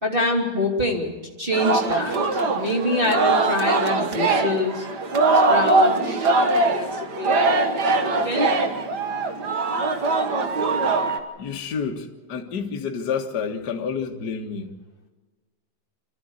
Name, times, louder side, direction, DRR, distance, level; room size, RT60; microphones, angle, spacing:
voice 1, 0.0-4.9 5.5-6.3 6.7-8.5, left 1 dB, 15° right, 3.0 m, -26 dB
Singing, 1.5-11.2, right 3 dB, 55° right, 1.1 m, -22 dB
voice 2, 11.4-14.7, left 6 dB, 40° left, 1.5 m, -29 dB
27.0 x 13.5 x 8.3 m
omnidirectional pair, 4.0 m